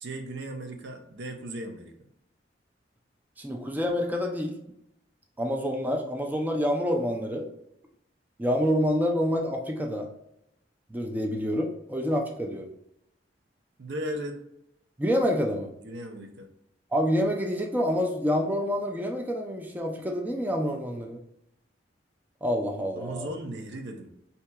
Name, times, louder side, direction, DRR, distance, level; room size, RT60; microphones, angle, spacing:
voice 1, 0.0-1.9 13.8-14.4 15.8-16.5 22.9-24.1, right 1 dB, 70° right, 4 dB, 0.6 m, -36 dB
voice 2, 3.4-4.6 5.4-7.5 8.4-10.1 10.9-12.7 15.0-15.7 16.9-21.2 22.4-23.3, equal, 10° right, 2 dB, 0.4 m, -27 dB
4.4 x 2.8 x 2.2 m, 0.79 s
head